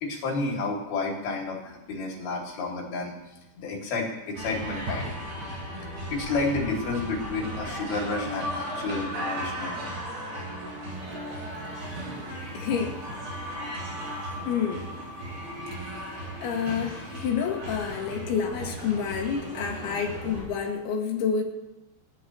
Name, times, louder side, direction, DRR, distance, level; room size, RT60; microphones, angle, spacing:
voice 1, 0.0-3.1 3.6-5.1 6.1-9.8, left 3 dB, 60° left, -1 dB, 4.4 m, -30 dB
sound 1, 4.3-20.4, equal, 70° right, 9.6 m, -36 dB
voice 2, 12.5-12.9 14.4-14.9 15.8-16.1 16.4-21.4, left 7 dB, 90° left, -1 dB, 4.5 m, -29 dB
27.0 x 13.0 x 3.1 m, 0.96 s
omnidirectional pair, 5.2 m